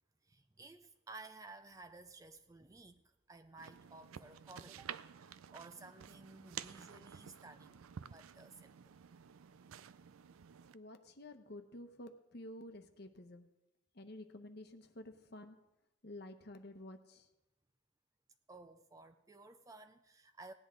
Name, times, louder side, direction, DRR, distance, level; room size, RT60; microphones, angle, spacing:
voice 1, 0.2-4.9 5.2-9.0 18.5-20.5, right 3 dB, 15° right, 0.4 m, -55 dB
sound 1, 3.6-10.7, right 8 dB, 90° right, 0.4 m, -51 dB
voice 2, 10.7-13.5 13.9-15.6 16.0-17.3, left 1 dB, 50° left, 1.0 m, -51 dB
18.0 x 10.5 x 3.8 m
head